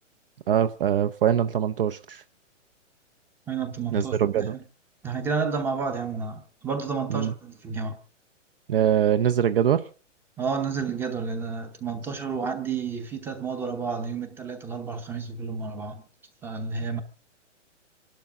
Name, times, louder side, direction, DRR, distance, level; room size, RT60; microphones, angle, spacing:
voice 1, 0.5-2.2 3.9-4.6 7.1-7.3 8.7-9.9, right 9 dB, 50° right, 0.7 m, -23 dB
voice 2, 3.5-4.6 5.0-8.0 10.4-16.0 16.4-17.0, right 5 dB, 5° right, 0.8 m, -31 dB
27.5 x 12.0 x 3.7 m
hypercardioid pair, 160°, 37 cm